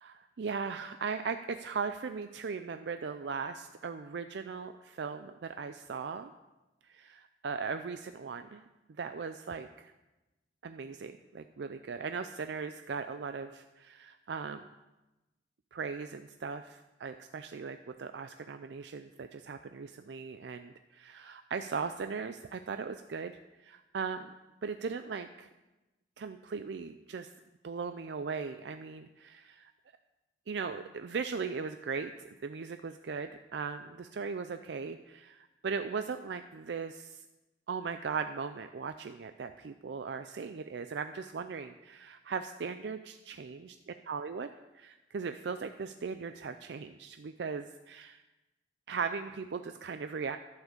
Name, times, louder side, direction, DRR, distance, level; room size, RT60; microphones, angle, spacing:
voice 1, 0.0-6.3 6.8-8.6 9.0-9.9 10.6-14.6 15.7-24.3 24.6-25.5 26.2-27.3 27.6-29.7 30.5-37.2 37.7-43.6 44.1-44.5 44.7-48.2 48.9-50.4, right 5 dB, 70° right, 9 dB, 0.4 m, -38 dB
11.5 x 7.3 x 6.6 m, 1.1 s
head